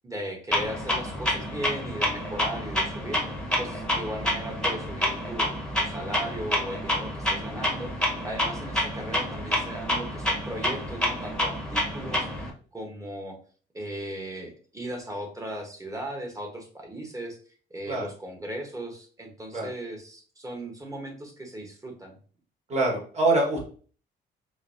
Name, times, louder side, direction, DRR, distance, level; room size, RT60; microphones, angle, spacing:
voice 1, 0.0-3.2 3.6-13.4 13.7-17.4 17.7-22.1, right 1 dB, 15° right, 2 dB, 1.2 m, -37 dB
Clock, 0.5-12.5, left 1 dB, 5° left, 1.1 m, -28 dB
voice 2, 22.7-23.7, right 2 dB, 35° right, -2 dB, 1.7 m, -24 dB
5.2 x 2.2 x 2.7 m, 0.42 s
cardioid pair, 90°, 20 cm